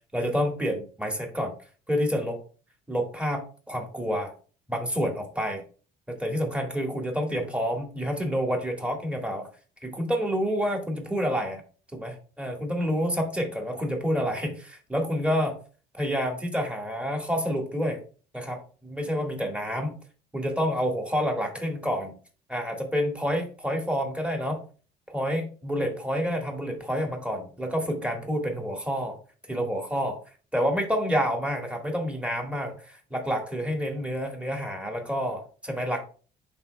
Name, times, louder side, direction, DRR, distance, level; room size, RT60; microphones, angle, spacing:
voice 1, 0.1-1.5 1.9-2.4 2.9-4.3 4.7-5.6 6.1-9.5 9.8-11.6 11.9-15.6 15.9-18.0 18.3-20.0 20.3-22.1 22.5-24.6 25.1-29.2 29.5-30.2 30.5-36.0, equal, 5° right, 2 dB, 1.7 m, -28 dB
11.0 x 4.2 x 2.2 m, 0.39 s
cardioid pair, 110°, 17 cm